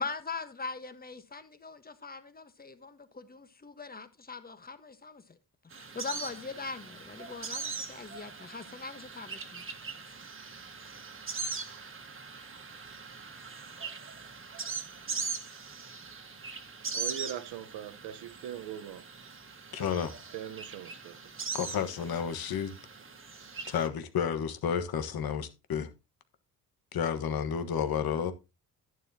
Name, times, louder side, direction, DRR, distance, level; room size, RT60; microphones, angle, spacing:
voice 1, 0.0-5.4 5.8-9.6 10.0-10.2, left 4 dB, 25° left, 1.3 m, -41 dB
sound 1, 5.7-23.9, right 5 dB, 30° right, 1.6 m, -41 dB
voice 2, 16.9-19.0 20.3-21.2, right 10 dB, 85° right, 1.1 m, -40 dB
voice 3, 19.7-20.1 21.5-22.7 23.7-25.9 26.9-28.3, left 7 dB, 65° left, 1.4 m, -31 dB
11.0 x 9.5 x 2.8 m
cardioid pair, 90°, 39 cm